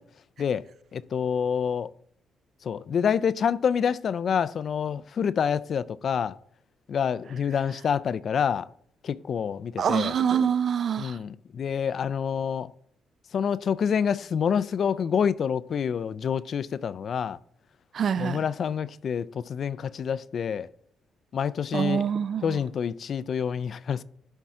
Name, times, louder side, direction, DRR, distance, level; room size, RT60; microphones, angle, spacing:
voice 1, 0.9-1.9 2.6-6.4 6.9-8.7 9.0-10.1 11.0-12.7 13.3-17.4 18.2-20.7 21.3-22.1 22.4-24.0, left 7 dB, 55° left, 0.3 m, -27 dB
voice 2, 9.8-11.2 17.9-18.4 21.7-22.6, right 7 dB, 55° right, 0.4 m, -25 dB
11.5 x 4.5 x 3.6 m
cardioid pair, 90°, 0 cm